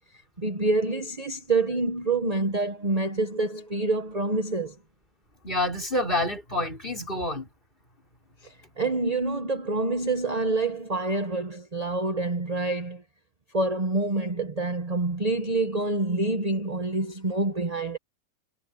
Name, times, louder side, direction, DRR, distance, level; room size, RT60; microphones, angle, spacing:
voice 1, 0.4-4.8 8.4-13.0 13.5-18.0, right 2 dB, 25° right, 1.1 m, -27 dB
voice 2, 5.4-7.5, left 1 dB, 25° left, 6.3 m, -28 dB
omnidirectional pair, 2.0 m